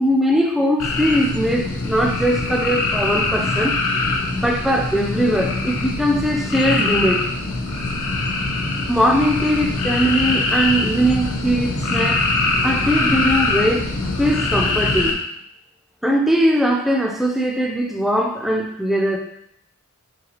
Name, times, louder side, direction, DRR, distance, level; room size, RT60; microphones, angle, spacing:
voice 1, 0.0-3.8 4.3-7.2 8.9-12.3 12.6-13.9 14.2-15.2 16.0-19.2, equal, ahead, 2 dB, 0.3 m, -20 dB
sound 1, 0.8-15.1, left 3 dB, 70° left, 0.6 m, -23 dB
3.9 x 3.5 x 2.9 m, 0.74 s
head